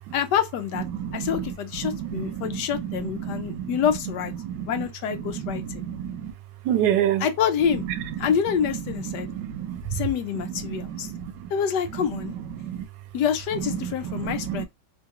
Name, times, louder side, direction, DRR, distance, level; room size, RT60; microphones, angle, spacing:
voice 1, 0.1-0.9 1.1-4.3 4.7-5.9 7.2-7.8 8.2-9.3 9.9-11.1 11.5-12.4 13.1-14.7, left 8 dB, 75° left, 1.2 m, -27 dB
voice 2, 0.9-1.5 1.8-2.6 3.2-3.7 4.4-4.7 5.4-6.3 6.6-7.3 9.1-9.8 10.6-11.5 12.6-12.9 13.8-14.7, right 10 dB, 90° right, 1.3 m, -29 dB
3.8 x 2.3 x 2.8 m
omnidirectional pair, 1.9 m